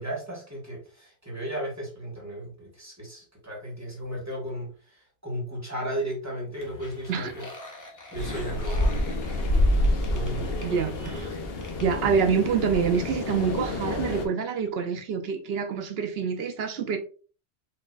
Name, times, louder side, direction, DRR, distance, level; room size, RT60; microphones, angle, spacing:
voice 1, 0.0-7.5 8.1-9.0 10.1-11.0, right 1 dB, 15° right, 1.4 m, -35 dB
sound 1, 6.5-12.0, left 2 dB, 20° left, 0.6 m, -46 dB
sound 2, 8.1-14.3, left 1 dB, 60° left, 0.9 m, -27 dB
voice 2, 10.6-11.3 11.8-17.0, right 6 dB, 65° right, 0.8 m, -26 dB
4.4 x 3.1 x 2.4 m
omnidirectional pair, 1.2 m